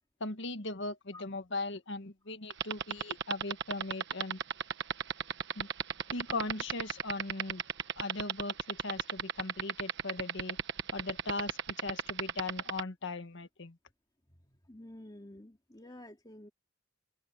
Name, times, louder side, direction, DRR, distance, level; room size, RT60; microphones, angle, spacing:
voice 1, 0.2-4.4 5.5-5.7 6.1-7.6 8.0-10.6 10.9-13.8, left 3 dB, 65° left, 1.6 m, -39 dB
sound 1, 2.5-12.8, right 7 dB, 60° right, 1.3 m, -32 dB
voice 2, 14.3-16.5, left 1 dB, 20° left, 2.7 m, -51 dB
head